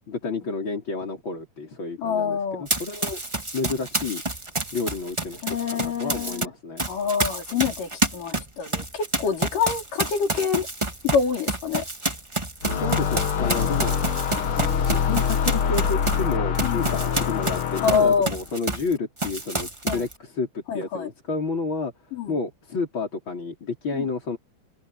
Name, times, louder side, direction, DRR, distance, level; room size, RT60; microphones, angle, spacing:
voice 1, 0.1-3.2 3.5-4.2 4.7-6.9 12.6-14.0 14.8-21.9 22.3-24.4, left 4 dB, 35° left, 5.0 m, -30 dB
voice 2, 2.0-2.7 5.4-6.5 6.9-10.7 11.0-11.8 13.4-13.6 16.6-16.9 17.8-18.3 19.9-20.0 20.7-21.1 22.1-22.4 23.9-24.1, left 6 dB, 85° left, 5.4 m, -26 dB
Run, 2.7-6.5 6.8-18.9 19.2-20.1, right 2 dB, 15° right, 1.3 m, -29 dB
sound 1, 12.6-18.3, left 7 dB, 50° left, 1.9 m, -25 dB
open air
omnidirectional pair, 3.7 m